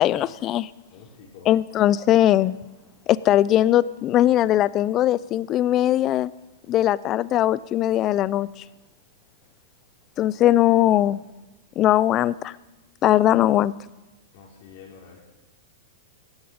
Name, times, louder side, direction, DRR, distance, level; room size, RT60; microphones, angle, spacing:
voice 1, 0.0-0.7 1.5-2.6 3.1-6.3 6.7-8.5 10.2-11.2 11.8-12.5 13.0-13.7, left 13 dB, 35° left, 20 dB, 0.5 m, -20 dB
voice 2, 0.9-1.5 14.3-15.3, left 4 dB, 55° left, 0 dB, 5.5 m, -45 dB
17.0 x 8.6 x 9.8 m, 1.1 s
hypercardioid pair, 130°, 0 cm